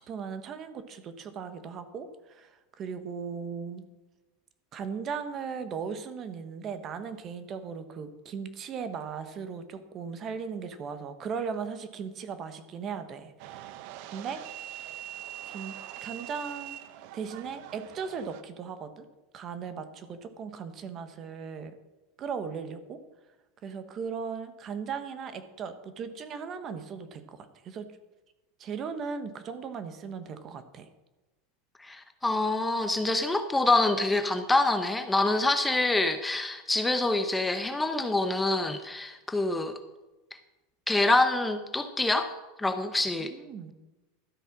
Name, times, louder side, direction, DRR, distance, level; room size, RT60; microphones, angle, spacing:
voice 1, 0.1-3.8 4.7-13.8 14.1-14.4 15.4-15.7 16.0-16.8 17.1-19.1 19.3-21.7 22.2-23.0 23.6-27.9 28.6-30.9 43.2-43.7, right 6 dB, 35° right, 10 dB, 1.2 m, -37 dB
sound 1, 13.4-18.4, right 12 dB, 60° right, 0.8 m, -43 dB
voice 2, 31.8-39.8 40.9-42.3 42.6-43.3, left 2 dB, 10° left, 8 dB, 0.8 m, -26 dB
12.5 x 7.8 x 6.0 m, 1.1 s
supercardioid pair, 125°, 0 cm